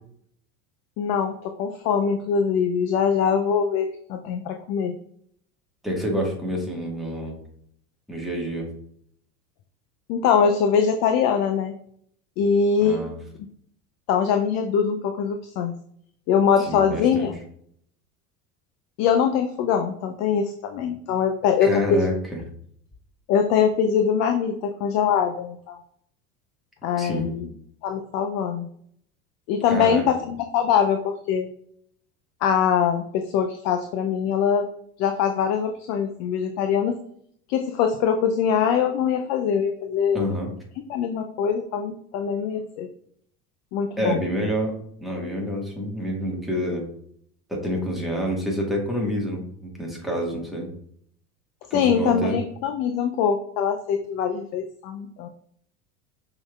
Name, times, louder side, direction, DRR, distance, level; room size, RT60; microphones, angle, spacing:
voice 1, 1.0-5.0 10.1-11.7 12.4-13.1 14.1-15.7 16.3-17.3 19.0-22.1 23.3-25.8 26.8-27.5 27.8-28.7 29.5-31.5 32.4-34.7 35.0-37.0 37.5-40.3 40.9-42.9 43.7-44.2 51.7-55.3, left 7 dB, 40° left, 6 dB, 0.4 m, -23 dB
voice 2, 5.8-7.4 8.1-8.7 12.8-13.2 16.7-17.3 21.6-22.4 27.0-27.4 29.7-30.0 40.1-40.5 44.0-44.7 45.0-46.9 47.5-50.7 51.7-52.4, equal, ahead, -2 dB, 1.4 m, -27 dB
5.3 x 3.7 x 2.3 m, 0.66 s
hypercardioid pair, 75°, 46 cm